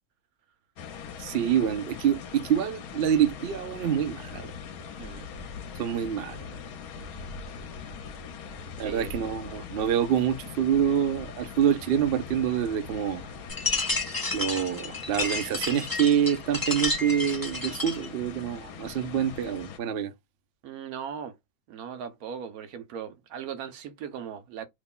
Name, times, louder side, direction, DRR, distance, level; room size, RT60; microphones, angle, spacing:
sound 1, 0.8-19.8, left 6 dB, 70° left, 1.1 m, -42 dB
voice 1, 1.2-4.5 5.8-6.4 8.8-13.2 14.3-20.1, right 9 dB, 60° right, 0.6 m, -26 dB
voice 2, 5.0-5.3 8.8-9.1 20.6-21.4 21.7-24.7, right 8 dB, 75° right, 1.0 m, -38 dB
sound 2, 13.5-18.1, left 3 dB, 20° left, 0.6 m, -31 dB
2.9 x 2.2 x 3.7 m
omnidirectional pair, 1.7 m